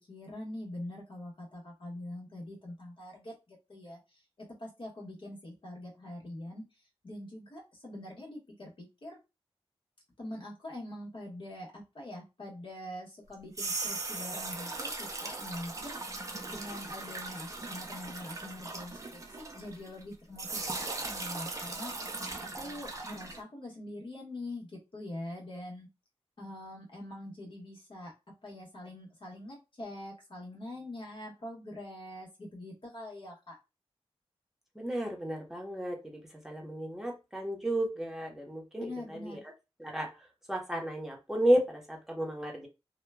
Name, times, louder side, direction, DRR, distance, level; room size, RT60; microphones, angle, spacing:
voice 1, 0.1-6.6 7.0-9.2 10.2-16.0 16.5-22.1 22.5-25.9 26.4-33.6 38.7-39.4, left 1 dB, 55° left, -2 dB, 1.3 m, -44 dB
sound 1, 13.3-20.0 20.4-23.4, right 3 dB, 30° right, 0.5 m, -39 dB
voice 2, 34.7-39.4 39.8-40.1 40.5-42.7, right 1 dB, 5° right, 1 dB, 0.9 m, -32 dB
2.9 x 2.2 x 2.2 m, 0.26 s
wide cardioid pair, 80°, 10 cm